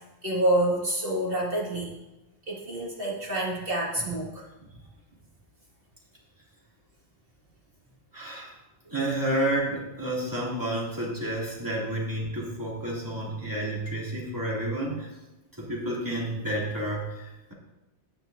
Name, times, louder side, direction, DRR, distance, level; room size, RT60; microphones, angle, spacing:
voice 1, 0.2-1.9 2.5-4.5, right 1 dB, 50° right, -4 dB, 2.2 m, -27 dB
voice 2, 8.1-8.5 8.9-15.1 15.6-17.5, right 1 dB, 15° right, -6 dB, 2.5 m, -30 dB
17.0 x 6.0 x 2.6 m, 1.0 s
omnidirectional pair, 1.2 m